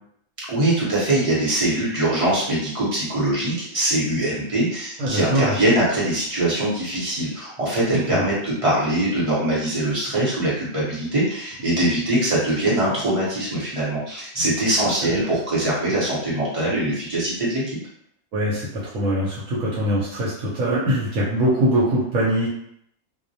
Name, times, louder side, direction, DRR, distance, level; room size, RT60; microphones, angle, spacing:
voice 1, 0.5-17.6, right 1 dB, 35° right, -7 dB, 0.7 m, -22 dB
voice 2, 5.0-5.5 7.9-8.2 15.0-15.1 18.3-22.5, equal, 80° right, -7 dB, 1.0 m, -22 dB
2.2 x 2.1 x 2.6 m, 0.71 s
omnidirectional pair, 1.3 m